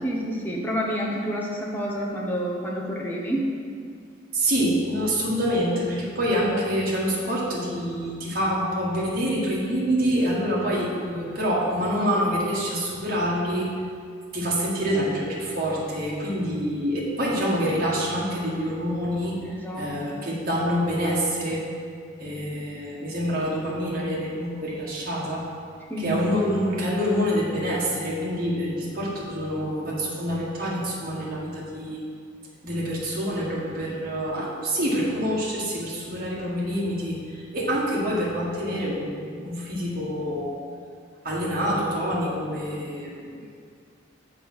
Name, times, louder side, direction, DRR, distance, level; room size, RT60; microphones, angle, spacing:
voice 1, 0.0-3.4 19.4-20.1 25.9-26.2, equal, 10° left, -3 dB, 1.0 m, -29 dB
voice 2, 4.3-13.7 14.3-21.6 22.2-25.5 26.0-32.0 32.6-40.5 41.2-43.4, equal, 50° right, -5 dB, 1.7 m, -26 dB
6.7 x 5.1 x 6.2 m, 2.2 s
head